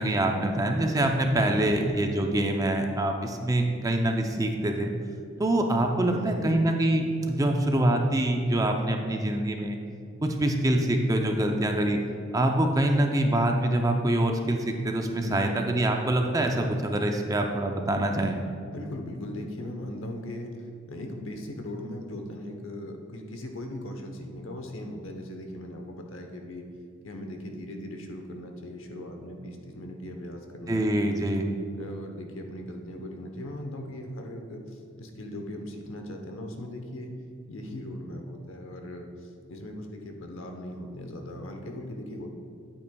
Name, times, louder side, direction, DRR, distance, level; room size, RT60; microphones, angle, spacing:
voice 1, 0.0-4.9 5.4-9.8 10.2-12.0 12.3-18.4 30.7-31.5, right 1 dB, 15° right, 3 dB, 0.5 m, -25 dB
voice 2, 1.3-2.0 6.1-6.6 15.2-15.7 18.6-20.5 20.9-26.7 27.0-31.3 31.7-37.1 37.5-42.3, left 1 dB, 70° left, 3 dB, 0.9 m, -39 dB
9.4 x 8.4 x 2.3 m, 2.4 s
head